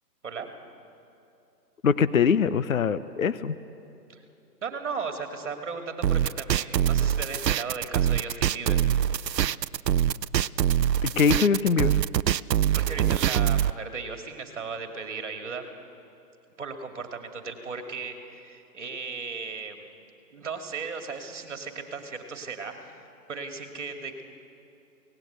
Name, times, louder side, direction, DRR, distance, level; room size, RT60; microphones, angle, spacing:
voice 1, 1.8-3.5 11.0-12.0, left 6 dB, 55° left, 15 dB, 0.8 m, -23 dB
voice 2, 4.6-8.8 12.7-15.6 16.6-19.8 20.3-23.0 23.3-24.2, right 5 dB, 45° right, 4 dB, 2.5 m, -36 dB
sound 1, 6.0-13.7, right 10 dB, 80° right, 0.6 m, -24 dB
26.5 x 18.5 x 8.1 m, 2.7 s
hypercardioid pair, 165°, 49 cm